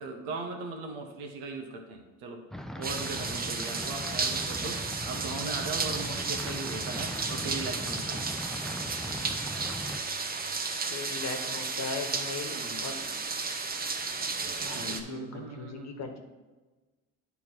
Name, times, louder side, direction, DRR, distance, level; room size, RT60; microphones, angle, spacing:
voice 1, 0.0-2.5 2.8-8.2 12.5-12.9 14.7-16.1, right 3 dB, 80° right, 4 dB, 1.1 m, -39 dB
sound 1, 2.5-10.0, equal, ahead, 0.4 m, -39 dB
sound 2, 2.8-15.0, right 4 dB, 25° right, 0.9 m, -33 dB
voice 2, 10.9-12.6 12.8-13.0 14.6-16.2, left 4 dB, 50° left, 5 dB, 1.2 m, -38 dB
9.2 x 3.6 x 4.5 m, 1.2 s
hypercardioid pair, 65°, 34 cm